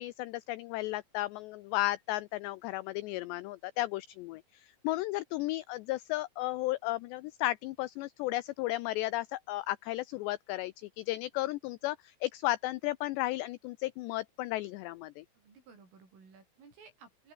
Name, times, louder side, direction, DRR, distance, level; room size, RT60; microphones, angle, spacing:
voice 1, 0.0-15.3, left 17 dB, 85° left, 2.4 m, -34 dB
voice 2, 15.4-17.3, right 5 dB, 80° right, 10.5 m, -57 dB
open air
omnidirectional pair, 5.7 m